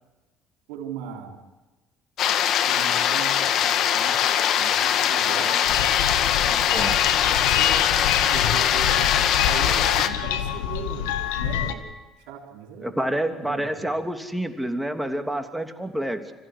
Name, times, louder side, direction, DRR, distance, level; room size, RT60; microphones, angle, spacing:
voice 1, 0.7-1.4 2.7-5.7 6.5-7.0 7.6-7.9 8.3-9.2 9.4-11.9 12.2-13.9, right 8 dB, 80° right, 2 dB, 3.8 m, -38 dB
sound 1, 2.2-10.1, left 9 dB, 65° left, 1.4 m, -22 dB
sound 2, 5.6-11.7, left 10 dB, 85° left, 1.2 m, -27 dB
voice 2, 12.8-16.3, right 1 dB, 5° right, 5 dB, 2.9 m, -28 dB
26.0 x 15.5 x 9.9 m, 1.2 s
hypercardioid pair, 60°, 0 cm